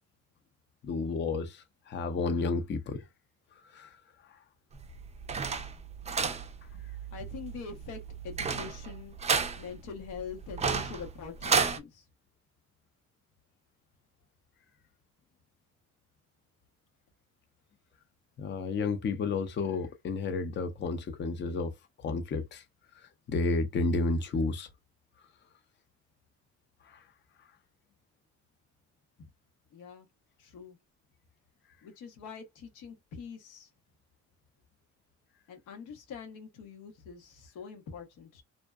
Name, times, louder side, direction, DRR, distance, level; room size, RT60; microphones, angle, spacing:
voice 1, 0.8-3.0 3.7-4.0 18.4-21.7 22.0-22.6 23.0-24.7 26.8-27.0, left 3 dB, 40° left, 0.5 m, -31 dB
sound 1, 4.7-11.8, right 5 dB, 20° right, 0.4 m, -32 dB
voice 2, 7.1-12.0 29.7-30.1 30.4-30.8 31.8-33.7 35.5-38.4, left 6 dB, 90° left, 0.9 m, -44 dB
2.6 x 2.1 x 2.2 m
cardioid pair, 90°, 30 cm